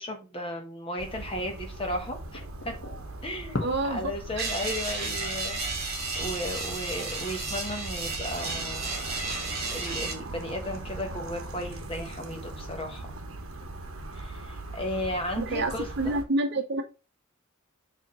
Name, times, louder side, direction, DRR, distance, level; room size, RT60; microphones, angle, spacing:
voice 1, 0.0-2.8 3.2-8.9 9.7-13.1 14.1-16.2, left 1 dB, 25° left, 1.3 m, -35 dB
sound 1, 1.0-16.2, right 2 dB, 75° right, 0.9 m, -40 dB
sound 2, 1.1-15.1, left 2 dB, 55° left, 1.1 m, -46 dB
voice 2, 3.6-4.1 4.4-4.5 15.4-16.8, right 2 dB, 50° right, 0.8 m, -28 dB
sound 3, 4.4-10.1, right 3 dB, 30° right, 2.0 m, -33 dB
4.8 x 3.6 x 5.4 m
head